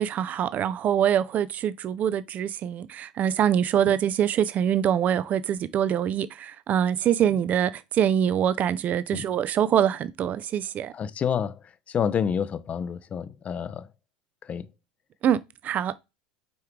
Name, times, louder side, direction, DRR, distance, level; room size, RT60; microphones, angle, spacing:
voice 1, 0.0-10.9 15.2-16.0, right 9 dB, 40° right, 0.5 m, -24 dB
voice 2, 10.9-13.9 14.4-14.7, left 7 dB, 35° left, 0.6 m, -29 dB
6.2 x 4.5 x 3.6 m
hypercardioid pair, 85°, 4 cm